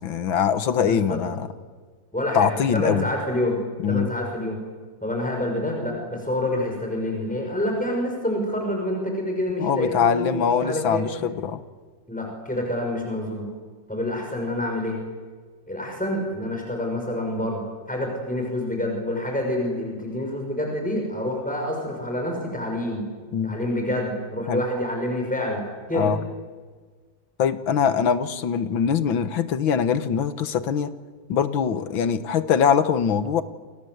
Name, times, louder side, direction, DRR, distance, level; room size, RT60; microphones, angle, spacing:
voice 1, 0.0-1.5 2.3-3.1 3.8-4.1 9.6-11.6 23.3-23.6 24.5-24.6 25.9-26.2 27.4-30.9 31.3-33.4, left 7 dB, 80° left, 11 dB, 2.0 m, -22 dB
voice 2, 0.8-1.2 2.1-3.6 3.9-4.6 5.0-11.0 12.1-13.5 13.9-15.0 15.7-23.1 23.4-26.1, left 1 dB, 5° left, 1 dB, 6.3 m, -27 dB
29.5 x 24.5 x 8.1 m, 1.5 s
omnidirectional pair, 2.1 m